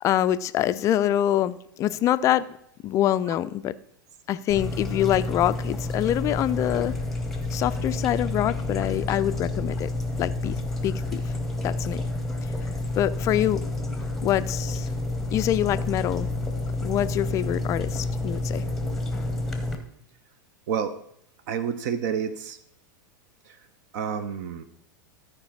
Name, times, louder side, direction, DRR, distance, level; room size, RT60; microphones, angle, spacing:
voice 1, 0.0-2.6 2.8-3.7 4.3-7.0 7.5-9.9 10.2-10.6 10.8-11.2 11.6-12.0 12.9-13.6 14.2-14.9 15.3-16.3 16.8-18.6, left 12 dB, 25° left, 15 dB, 0.3 m, -25 dB
sound 1, 4.5-19.8, left 2 dB, ahead, 0.9 m, -29 dB
voice 2, 20.7-21.0 21.5-22.6 23.4-23.6 23.9-24.6, right 7 dB, 50° right, 12 dB, 0.6 m, -29 dB
13.0 x 4.6 x 4.1 m, 0.73 s
figure-of-eight pair, 90°, 12 cm